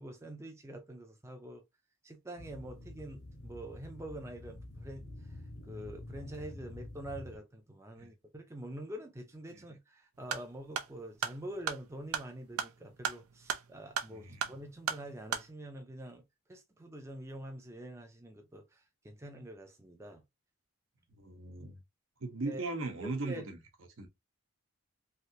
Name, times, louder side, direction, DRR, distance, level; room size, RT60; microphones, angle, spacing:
voice 1, 0.0-1.6 2.0-16.2 16.5-20.2 22.5-22.6 23.0-23.5, right 1 dB, 15° right, 0.4 m, -46 dB
sound 1, 2.4-7.4, left 1 dB, 75° left, 0.8 m, -48 dB
sound 2, 10.2-15.5, right 7 dB, 85° right, 0.5 m, -38 dB
voice 2, 21.2-21.8 22.2-23.6 24.0-24.1, right 3 dB, 65° right, 0.8 m, -38 dB
3.2 x 2.6 x 2.7 m
head